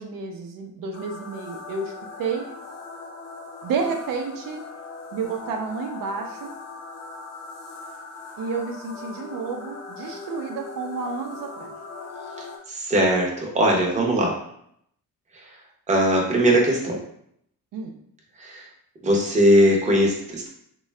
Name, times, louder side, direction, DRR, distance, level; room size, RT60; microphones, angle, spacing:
voice 1, 0.0-2.5 3.6-4.6 5.1-6.5 8.4-11.7 17.7-17.9, right 4 dB, 80° right, 3 dB, 0.6 m, -30 dB
sound 1, 0.9-12.6, left 4 dB, 50° left, 0.6 m, -40 dB
voice 2, 12.7-14.4 15.3-15.5 15.9-17.0 18.4-18.6 19.0-20.5, equal, 20° right, -2 dB, 0.6 m, -20 dB
3.6 x 2.3 x 3.1 m, 0.70 s
cardioid pair, 170°, 33 cm